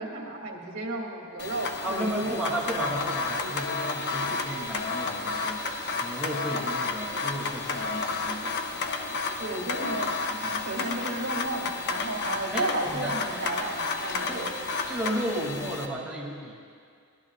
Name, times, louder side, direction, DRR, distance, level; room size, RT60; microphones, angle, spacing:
voice 1, 0.0-2.4 2.8-3.0 9.4-10.1 10.6-14.5, right 2 dB, 70° right, -1 dB, 2.5 m, -33 dB
sound 1, 1.4-15.9, left 3 dB, 50° left, 0.9 m, -31 dB
voice 2, 1.8-8.5 10.3-10.6 12.5-13.1 14.3-14.5 14.9-16.5, right 1 dB, 5° right, -5 dB, 2.6 m, -33 dB
23.0 x 17.0 x 2.5 m, 2.3 s
head